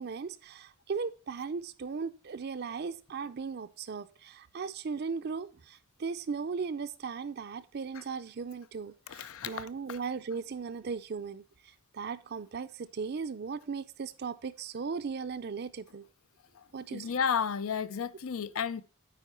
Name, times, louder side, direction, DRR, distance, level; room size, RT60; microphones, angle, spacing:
voice 1, 0.0-5.5 6.0-11.4 11.9-16.0 16.7-17.1, right 5 dB, 50° right, 0.5 m, -37 dB
voice 2, 9.1-10.0 16.9-18.8, left 7 dB, 85° left, 0.5 m, -33 dB
9.2 x 4.5 x 4.3 m
head